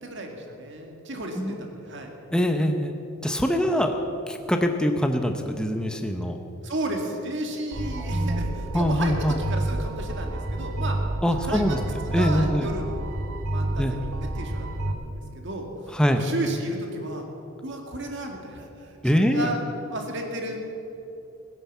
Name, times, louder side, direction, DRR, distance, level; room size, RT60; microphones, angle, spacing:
voice 1, 0.0-2.1 3.5-3.6 6.6-11.0 11.4-11.8 12.1-13.1 13.5-15.7 16.1-17.3 17.6-20.7, right 1 dB, 55° right, 2 dB, 2.0 m, -33 dB
voice 2, 2.3-3.0 3.2-4.0 4.3-6.4 8.0-8.4 8.7-9.4 11.2-11.8 12.1-12.7 13.8-14.0 15.9-16.2 19.0-19.6, equal, 5° left, 5 dB, 0.8 m, -24 dB
sound 1, 7.7-14.9, right 1 dB, 80° right, 1.3 m, -29 dB
18.0 x 10.0 x 7.2 m, 2.9 s
head